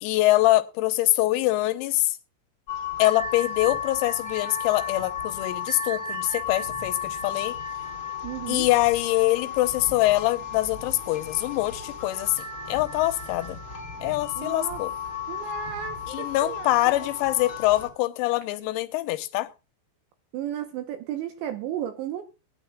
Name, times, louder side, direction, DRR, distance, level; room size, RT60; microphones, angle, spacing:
voice 1, 0.0-2.2 3.0-7.6 8.5-13.6 14.0-14.9 16.1-19.5, left 17 dB, 90° left, 3.6 m, -24 dB
sound 1, 2.7-17.9, left 6 dB, 55° left, 1.4 m, -34 dB
voice 2, 8.2-8.7 14.4-14.8 15.3-17.1 20.3-22.2, right 11 dB, 75° right, 2.8 m, -34 dB
20.0 x 10.5 x 2.3 m
omnidirectional pair, 6.0 m